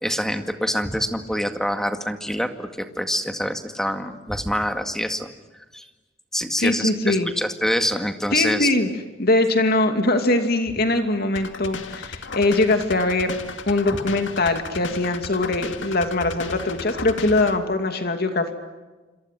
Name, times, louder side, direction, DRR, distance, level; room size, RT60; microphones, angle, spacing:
voice 1, 0.0-5.3 5.7-5.9 6.3-8.7, equal, 5° left, 7 dB, 2.1 m, -26 dB
voice 2, 6.6-7.3 8.3-8.9 9.2-13.4 13.7-18.5, left 2 dB, 55° left, 6 dB, 2.6 m, -22 dB
sound 1, 11.4-17.6, left 4 dB, 70° left, 2.1 m, -35 dB
27.5 x 27.0 x 7.6 m, 1.2 s
head